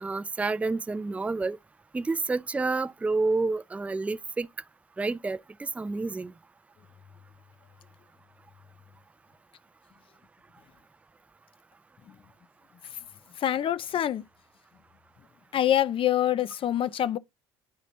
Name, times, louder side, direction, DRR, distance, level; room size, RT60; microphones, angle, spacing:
voice 1, 0.0-1.6 1.9-4.5 5.0-6.3, right 3 dB, 10° right, 0.4 m, -29 dB
voice 2, 13.4-14.2 15.5-17.2, left 11 dB, 45° left, 0.6 m, -25 dB
10.5 x 4.1 x 2.7 m
hypercardioid pair, 65°, 12 cm